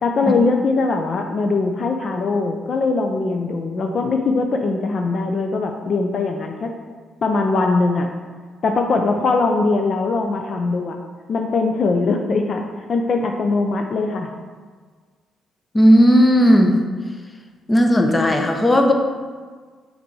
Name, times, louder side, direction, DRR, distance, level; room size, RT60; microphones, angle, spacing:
voice 1, 0.0-6.7 7.2-8.1 8.6-11.0 11.3-12.6 12.9-14.3, left 3 dB, 50° left, 3 dB, 0.5 m, -21 dB
voice 2, 15.7-16.8 17.7-18.9, equal, 20° left, 3 dB, 0.8 m, -14 dB
6.0 x 4.0 x 4.7 m, 1.5 s
cardioid pair, 90°, 0 cm